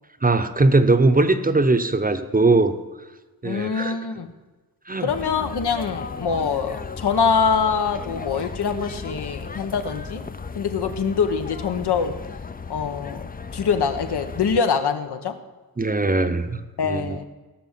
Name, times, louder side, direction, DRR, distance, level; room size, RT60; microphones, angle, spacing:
voice 1, 0.2-2.7 3.4-3.9 4.9-5.1 15.8-17.2, right 2 dB, 20° right, 8 dB, 0.8 m, -20 dB
voice 2, 3.4-4.3 5.0-10.2 10.6-12.1 12.7-13.2 13.5-15.3 16.8-17.2, left 6 dB, 80° left, 7 dB, 1.2 m, -24 dB
sound 1, 5.1-14.6, left 5 dB, 25° left, 0.5 m, -35 dB
16.5 x 6.4 x 7.4 m, 1.2 s
wide cardioid pair, 140°, 39 cm